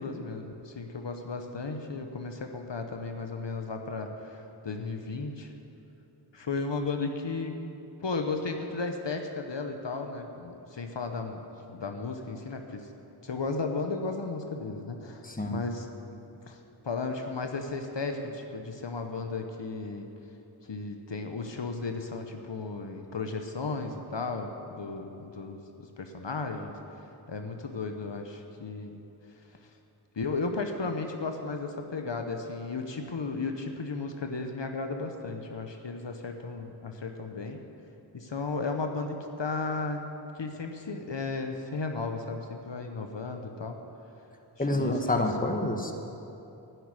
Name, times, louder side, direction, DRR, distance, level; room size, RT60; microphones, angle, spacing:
voice 1, 0.0-5.5 6.3-7.6 8.0-11.4 11.7-12.8 13.2-15.9 16.5-16.6 16.8-20.1 20.7-26.7 27.3-29.0 30.2-37.6 38.1-40.1 40.4-43.7 44.6-45.3, left 3 dB, 70° left, 4 dB, 1.0 m, -34 dB
voice 2, 15.2-15.6 44.6-45.9, left 1 dB, 20° left, 3 dB, 1.2 m, -28 dB
11.5 x 7.9 x 9.7 m, 2.9 s
wide cardioid pair, 50°, 46 cm